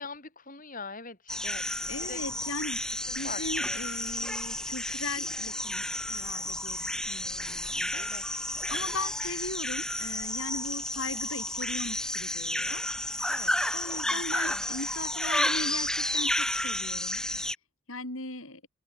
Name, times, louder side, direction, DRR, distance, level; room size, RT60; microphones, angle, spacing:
voice 1, 0.0-2.2 3.1-3.8 7.9-8.2 13.3-13.8 14.0-14.7, left 4 dB, 40° left, 6.5 m, -43 dB
sound 1, 1.3-17.6, left 1 dB, 5° left, 1.7 m, -31 dB
voice 2, 1.9-2.8 3.1-8.2 8.7-12.8 13.7-17.2 17.9-18.6, left 2 dB, 65° left, 5.8 m, -38 dB
open air
head